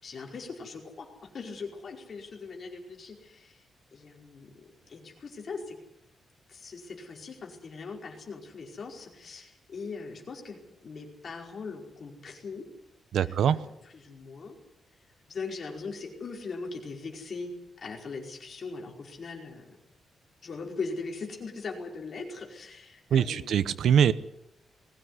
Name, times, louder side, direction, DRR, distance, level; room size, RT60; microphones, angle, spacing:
voice 1, 0.0-3.6 3.9-5.8 6.5-12.7 13.2-14.6 15.3-19.7 20.4-23.7, left 4 dB, 40° left, 0 dB, 5.1 m, -40 dB
voice 2, 13.1-13.6 23.1-24.1, right 8 dB, 75° right, 15 dB, 0.9 m, -23 dB
20.5 x 17.0 x 9.8 m, 0.86 s
wide cardioid pair, 160°, 0 cm